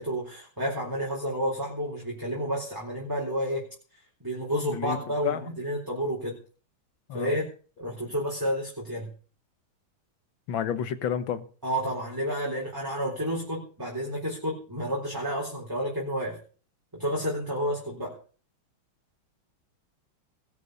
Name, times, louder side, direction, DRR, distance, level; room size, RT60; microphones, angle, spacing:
voice 1, 0.0-3.6 4.2-6.4 7.1-7.5 7.8-9.1 11.6-16.4 16.9-18.2, equal, 10° right, -3 dB, 3.9 m, -30 dB
voice 2, 4.7-5.0 5.2-5.4 7.1-7.4 10.5-11.4, left 8 dB, 70° left, 12 dB, 1.8 m, -30 dB
20.0 x 7.2 x 6.7 m, 0.40 s
omnidirectional pair, 2.3 m